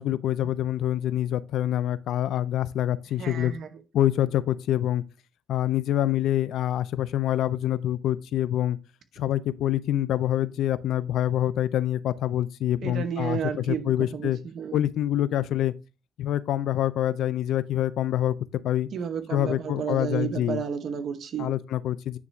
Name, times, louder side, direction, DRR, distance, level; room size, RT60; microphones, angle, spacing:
voice 1, 0.0-3.5 3.9-5.0 5.5-8.8 9.2-14.4 14.7-15.7 16.2-18.4 18.6-18.9 19.3-20.6 21.4-22.2, left 12 dB, 80° left, 0.5 m, -26 dB
voice 2, 3.2-3.7 12.8-14.8 18.9-21.5, right 7 dB, 65° right, 0.9 m, -32 dB
9.6 x 3.5 x 3.2 m
cardioid pair, 90°, 0 cm